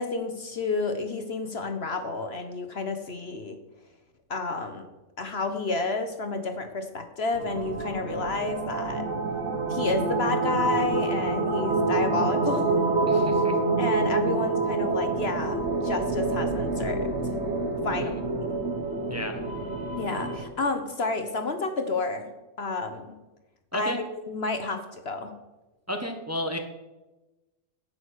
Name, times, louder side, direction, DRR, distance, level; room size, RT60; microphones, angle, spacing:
voice 1, 0.0-3.6 4.3-4.9 5.2-9.1 9.7-12.7 13.0-13.1 13.8-17.3 17.8-18.2 19.9-23.1 23.7-25.3, left 3 dB, 50° left, 7 dB, 1.2 m, -30 dB
sound 1, 7.3-20.4, right 3 dB, 55° right, 1.9 m, -27 dB
voice 2, 13.1-13.5 17.9-18.2 19.1-19.4 23.7-24.0 25.9-26.6, left 1 dB, 10° right, 4 dB, 1.2 m, -32 dB
11.0 x 8.5 x 6.4 m, 1.1 s
omnidirectional pair, 1.4 m